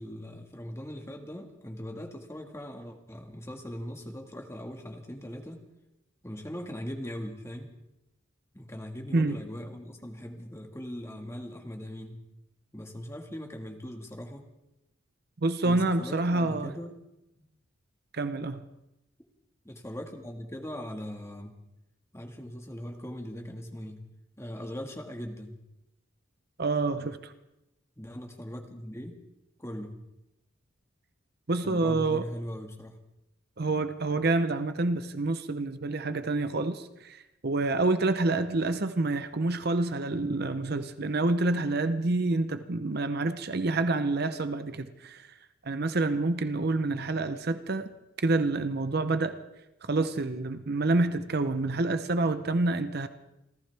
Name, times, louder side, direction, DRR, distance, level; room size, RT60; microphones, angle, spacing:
voice 1, 0.0-5.6 6.2-7.7 8.5-12.2 12.7-14.5 15.6-16.9 17.3-17.4 19.6-21.5 22.1-24.0 24.4-25.6 28.0-29.2 29.6-30.0 31.6-33.0, equal, 15° left, 3 dB, 1.7 m, -40 dB
voice 2, 15.4-16.7 18.1-18.6 26.6-27.3 31.5-32.2 33.6-45.3 45.6-47.9 48.2-49.4 49.8-53.1, right 2 dB, 50° right, 10 dB, 0.8 m, -28 dB
28.5 x 14.5 x 3.5 m, 0.90 s
head